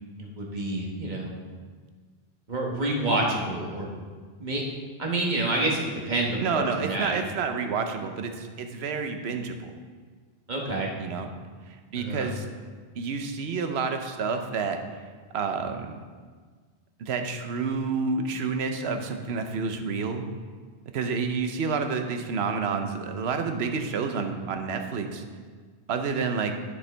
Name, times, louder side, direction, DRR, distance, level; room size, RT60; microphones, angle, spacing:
voice 1, 0.4-1.3 2.5-3.9 4.4-4.6 5.0-7.2 10.5-10.9 12.0-12.3, right 2 dB, 45° right, -1 dB, 1.3 m, -28 dB
voice 2, 6.4-9.7 11.0-11.3 11.7-12.5 12.9-14.8 15.3-15.9 17.0-20.2 20.9-25.2 25.9-26.5, right 5 dB, 90° right, 6 dB, 1.0 m, -29 dB
10.0 x 6.8 x 3.4 m, 1.6 s
omnidirectional pair, 1.0 m